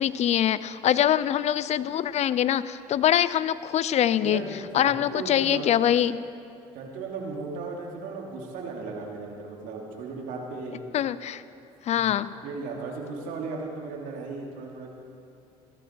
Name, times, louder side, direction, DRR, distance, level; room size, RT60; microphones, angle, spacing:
voice 1, 0.0-4.4 4.7-6.2 10.9-11.4 11.8-12.3, left 11 dB, 50° left, 16 dB, 0.6 m, -24 dB
voice 2, 4.2-5.8 6.7-10.8 11.9-12.0 12.4-14.9, right 4 dB, 70° right, 0 dB, 2.8 m, -36 dB
17.0 x 13.5 x 4.6 m, 2.5 s
supercardioid pair, 80°, 14 cm